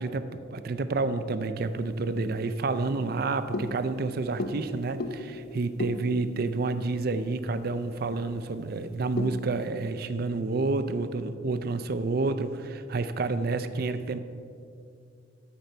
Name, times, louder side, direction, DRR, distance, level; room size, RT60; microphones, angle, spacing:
voice 1, 0.0-14.2, right 3 dB, 55° right, 11 dB, 0.5 m, -29 dB
sound 1, 1.6-9.5, left 2 dB, 55° left, 0.5 m, -39 dB
13.5 x 5.2 x 4.4 m, 2.4 s
head